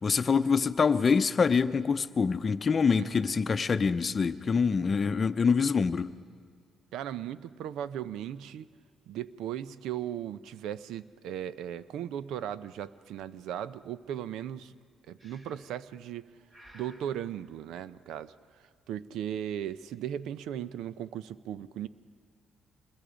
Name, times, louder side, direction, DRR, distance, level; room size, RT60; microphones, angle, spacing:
voice 1, 0.0-6.1, left 5 dB, 40° left, 0.7 m, -25 dB
voice 2, 3.0-3.3 6.9-8.7 9.1-14.7 15.1-16.3 16.7-21.9, right 10 dB, 85° right, 0.6 m, -37 dB
Breathing, 15.2-15.8 16.5-17.1, equal, 35° right, 4.5 m, -55 dB
26.0 x 21.0 x 5.1 m
cardioid pair, 90°, 0 cm